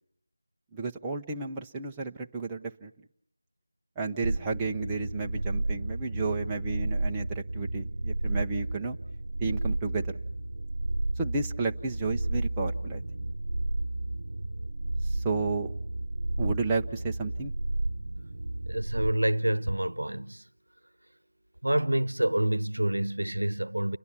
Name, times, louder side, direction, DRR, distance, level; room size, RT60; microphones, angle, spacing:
voice 1, 0.7-2.9 4.0-9.0 9.4-10.1 11.2-13.0 15.0-15.7 16.4-17.5, right 4 dB, 10° right, 0.9 m, -32 dB
sound 1, 4.2-19.1, right 2 dB, 60° right, 1.0 m, -32 dB
voice 2, 18.7-20.5 21.6-24.0, right 1 dB, 85° right, 1.0 m, -27 dB
30.0 x 22.5 x 6.0 m
figure-of-eight pair, 170°, 0 cm